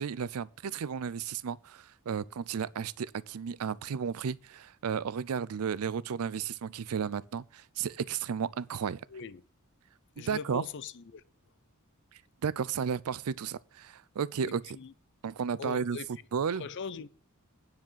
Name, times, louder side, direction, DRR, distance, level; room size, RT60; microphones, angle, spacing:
voice 1, 0.0-9.0 10.2-10.6 12.4-14.8 15.2-16.0 16.3-16.7, right 7 dB, 75° right, 0.4 m, -33 dB
voice 2, 9.1-9.4 10.2-11.2 14.4-14.9 15.6-16.1 16.5-17.1, left 5 dB, 55° left, 0.5 m, -41 dB
9.5 x 4.9 x 7.4 m
head